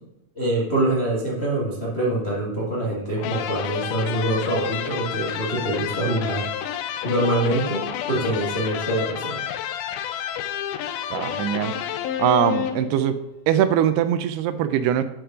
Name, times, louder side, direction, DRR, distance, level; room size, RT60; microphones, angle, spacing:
voice 1, 0.3-6.8 7.0-9.4, right 1 dB, 55° left, -6 dB, 0.6 m, -25 dB
sound 1, 3.2-13.2, left 10 dB, 80° left, 2.3 m, -30 dB
voice 2, 11.1-11.7 12.2-13.1 13.5-15.0, right 10 dB, 90° right, 10 dB, 2.7 m, -21 dB
9.1 x 4.7 x 5.0 m, 0.84 s
omnidirectional pair, 4.5 m